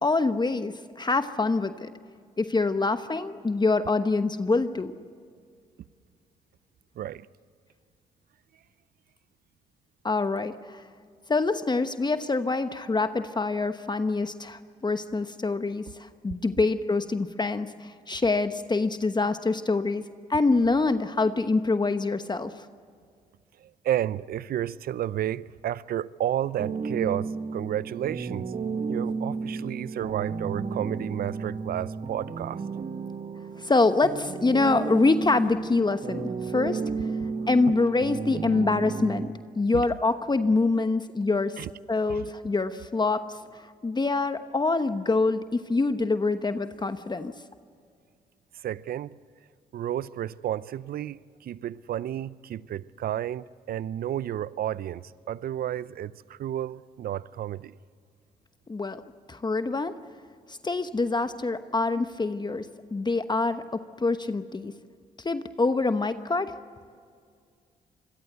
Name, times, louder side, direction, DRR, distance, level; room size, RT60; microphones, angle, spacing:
voice 1, 0.0-1.9 2.4-4.9 10.0-10.8 11.3-20.0 20.3-22.5 33.6-36.8 37.5-47.3 58.7-59.0 59.3-59.9 60.5-63.6 64.0-64.7 65.2-66.5, left 3 dB, 25° left, 1.1 m, -25 dB
voice 2, 23.6-28.5 28.9-32.6 37.2-37.5 39.7-39.9 41.6-41.7 42.1-42.2 48.5-49.2 49.7-57.7, right 11 dB, 65° right, 0.6 m, -32 dB
sound 1, 26.6-39.3, right 4 dB, 45° right, 1.8 m, -33 dB
26.5 x 21.5 x 8.2 m
supercardioid pair, 55°, 16 cm